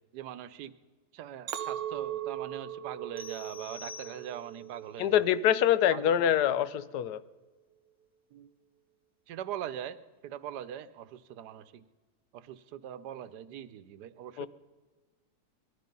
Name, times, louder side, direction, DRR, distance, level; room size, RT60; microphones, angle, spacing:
voice 1, 0.1-0.7 1.1-5.3 5.9-6.3 8.3-8.5 9.3-10.0 10.2-11.8 12.3-14.5, right 10 dB, 90° right, 14 dB, 1.3 m, -42 dB
Chink clink, 1.5-5.8 6.3-6.7, right 11 dB, 70° right, 1.2 m, -39 dB
sound 1, 3.2-4.7, left 5 dB, 10° left, 0.5 m, -47 dB
voice 2, 5.0-7.2 14.4-14.5, left 10 dB, 85° left, 15 dB, 1.2 m, -25 dB
20.5 x 12.5 x 5.4 m, 1.4 s
omnidirectional pair, 1.7 m